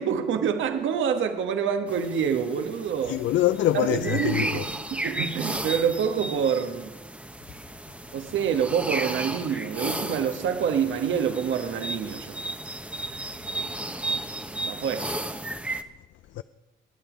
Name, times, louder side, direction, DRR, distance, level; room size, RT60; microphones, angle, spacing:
voice 1, 0.0-3.2 3.7-4.6 4.9-7.0 8.1-12.4 14.6-15.1, right 7 dB, 75° right, 1.4 m, -26 dB
sound 1, 1.9-15.8, right 1 dB, 5° right, 0.9 m, -34 dB
voice 2, 3.1-4.7 16.3-16.4, left 14 dB, 70° left, 0.4 m, -24 dB
22.0 x 9.2 x 5.1 m
cardioid pair, 90°, 20 cm